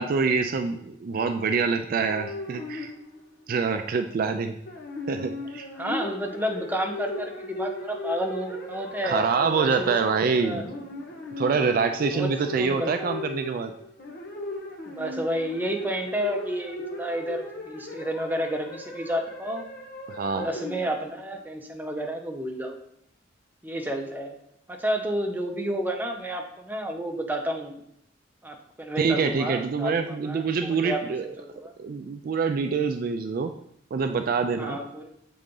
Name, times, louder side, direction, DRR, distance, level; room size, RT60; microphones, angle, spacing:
voice 1, 0.0-2.9 3.5-4.5 5.1-5.6 9.0-10.6 11.4-13.7 20.1-20.5 29.0-31.3 31.8-33.5 33.9-34.8, right 5 dB, 50° right, 7 dB, 0.3 m, -25 dB
sound 1, 2.1-3.5 4.7-21.3, left 2 dB, 55° left, 1.0 m, -37 dB
voice 2, 5.8-10.6 12.1-13.2 14.9-19.7 20.3-22.7 23.6-24.4 24.7-27.8 28.4-31.7 34.6-35.1, equal, 10° right, 3 dB, 0.7 m, -31 dB
7.2 x 3.8 x 3.7 m, 0.72 s
head